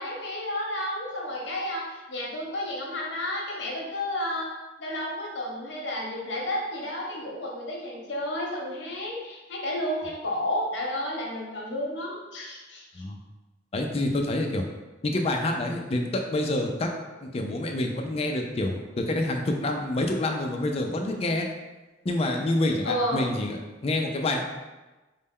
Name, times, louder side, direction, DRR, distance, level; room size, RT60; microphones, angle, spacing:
voice 1, 0.0-4.5 4.8-13.0 22.8-23.3, left 1 dB, 75° left, -2 dB, 0.9 m, -31 dB
voice 2, 13.7-14.6 15.0-16.9 17.2-21.5 22.0-24.4, left 1 dB, 35° left, 3 dB, 0.4 m, -27 dB
4.1 x 2.1 x 3.6 m, 1.1 s
head